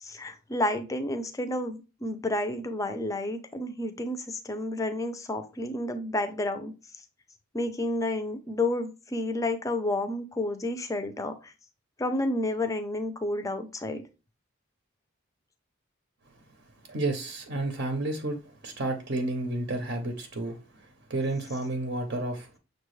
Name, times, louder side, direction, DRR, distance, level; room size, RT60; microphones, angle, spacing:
voice 1, 0.0-6.7 7.5-11.5 12.0-14.0, left 1 dB, 15° left, 0.4 m, -30 dB
voice 2, 16.9-22.5, right 2 dB, 55° right, 0.7 m, -31 dB
6.3 x 2.3 x 3.1 m
head